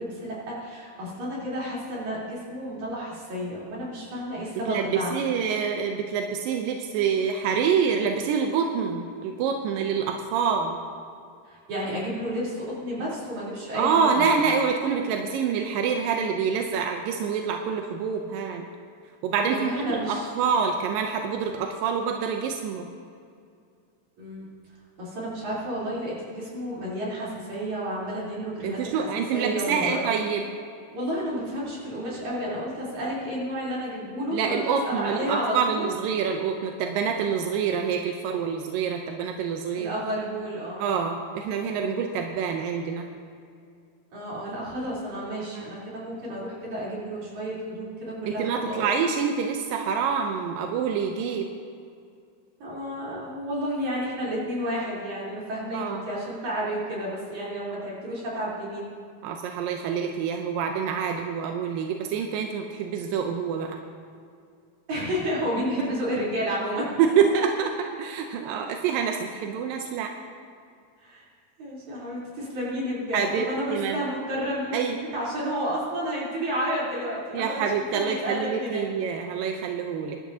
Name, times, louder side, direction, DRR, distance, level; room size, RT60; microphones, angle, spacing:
voice 1, 0.0-5.2 11.5-14.4 19.4-20.3 24.2-24.5 25.0-30.0 30.9-35.9 39.7-40.8 44.1-48.9 52.6-58.9 64.9-66.9 71.0-71.2 71.6-77.6 77.9-78.9 79.4-79.5, equal, 50° right, -7 dB, 4.9 m, -31 dB
voice 2, 4.7-10.8 13.8-18.6 19.2-19.7 20.1-22.9 28.6-30.4 34.3-39.9 40.8-43.0 45.5-45.7 48.3-51.5 55.7-56.0 59.2-63.8 67.0-70.1 73.1-74.0 74.7-75.0 77.3-80.2, right 6 dB, 80° right, 3 dB, 2.1 m, -26 dB
23.0 x 12.0 x 2.8 m, 2.3 s
omnidirectional pair, 4.6 m